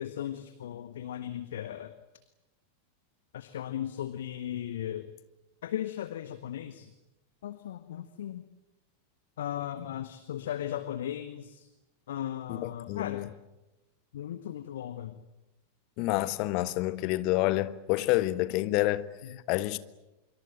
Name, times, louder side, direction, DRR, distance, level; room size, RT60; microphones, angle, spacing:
voice 1, 0.0-1.9 3.3-5.1 5.6-6.9 7.4-8.4 9.4-11.7 12.1-13.3 14.1-15.2 19.2-19.4, left 11 dB, 60° left, 1.5 m, -37 dB
voice 2, 12.9-13.3 16.0-19.1 19.5-19.8, left 17 dB, 45° left, 1.4 m, -28 dB
26.0 x 23.5 x 9.0 m
figure-of-eight pair, 90°, 0 cm